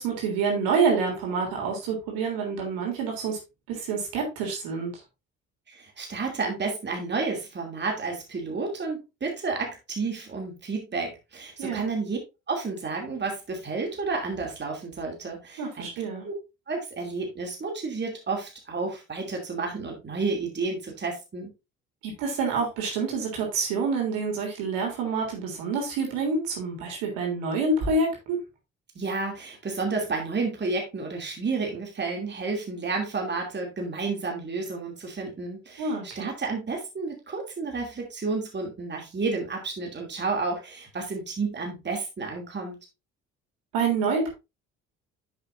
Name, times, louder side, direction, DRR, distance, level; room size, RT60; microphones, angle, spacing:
voice 1, 0.0-3.4 3.7-4.9 11.6-11.9 15.6-16.3 22.0-28.4 35.8-36.3 43.7-44.3, right 4 dB, 60° right, 0 dB, 3.4 m, -27 dB
voice 2, 5.7-12.2 12.5-16.3 16.7-21.5 28.9-42.8, right 4 dB, 30° right, 1 dB, 2.8 m, -31 dB
10.0 x 7.1 x 2.6 m, 0.25 s
figure-of-eight pair, 50°, 38 cm